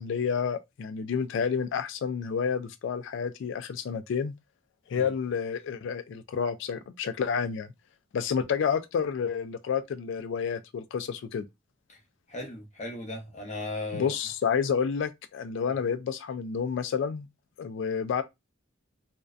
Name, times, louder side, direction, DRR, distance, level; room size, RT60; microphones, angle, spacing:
voice 1, 0.0-4.3 4.9-7.7 8.1-11.4 13.9-17.3 17.6-18.2, left 6 dB, 65° left, 0.3 m, -29 dB
voice 2, 12.3-14.1 15.6-15.8, left 2 dB, 35° left, 0.7 m, -37 dB
2.5 x 2.2 x 2.3 m
head